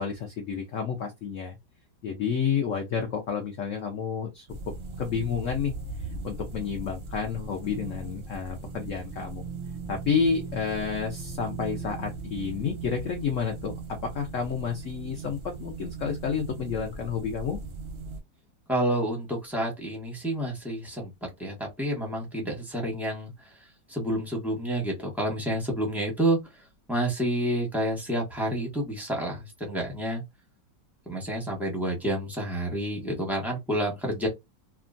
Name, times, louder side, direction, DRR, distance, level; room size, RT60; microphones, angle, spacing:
voice 1, 0.0-1.6 2.0-4.5 5.0-5.7 6.2-9.5 9.9-13.7 14.1-17.6, left 6 dB, 70° left, 0.7 m, -30 dB
sound 1, 4.5-18.2, right 4 dB, 55° right, 0.7 m, -38 dB
voice 2, 18.7-23.3 23.9-26.4 26.9-30.2 31.1-34.3, right 1 dB, ahead, 0.5 m, -29 dB
2.9 x 2.3 x 2.5 m
omnidirectional pair, 1.9 m